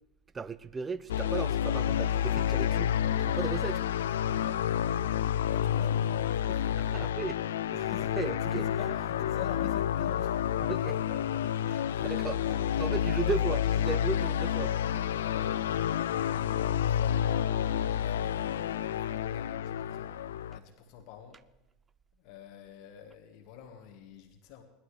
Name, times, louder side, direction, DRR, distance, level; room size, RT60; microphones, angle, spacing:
voice 1, 0.3-3.8 6.5-7.4 7.7-8.6 10.7-12.4 12.8-15.0, right 5 dB, 20° right, 0.5 m, -37 dB
sound 1, 1.1-20.6, left 10 dB, 85° left, 0.4 m, -29 dB
voice 2, 5.5-6.7 7.8-10.4 11.9-12.2 12.4-12.9 13.2-13.3 15.1-20.2 20.5-21.4 22.2-24.6, left 9 dB, 60° left, 1.6 m, -47 dB
19.5 x 11.5 x 3.4 m
hypercardioid pair, 100°, 0 cm